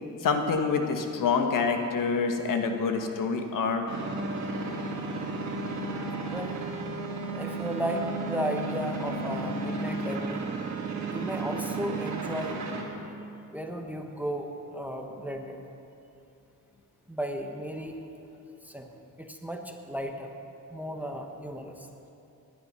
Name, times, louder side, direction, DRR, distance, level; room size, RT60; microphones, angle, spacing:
voice 1, 0.2-3.8 4.6-4.7, left 5 dB, 65° left, 5 dB, 1.5 m, -27 dB
sound 1, 3.9-12.8, right 3 dB, 55° right, 2.6 m, -33 dB
voice 2, 7.3-10.4 11.1-12.6 13.5-15.6 17.1-18.0 18.6-18.9 19.2-20.3 20.7-21.9, equal, 5° right, 3 dB, 1.0 m, -34 dB
19.0 x 11.0 x 5.6 m, 2.8 s
cardioid pair, 135°, 34 cm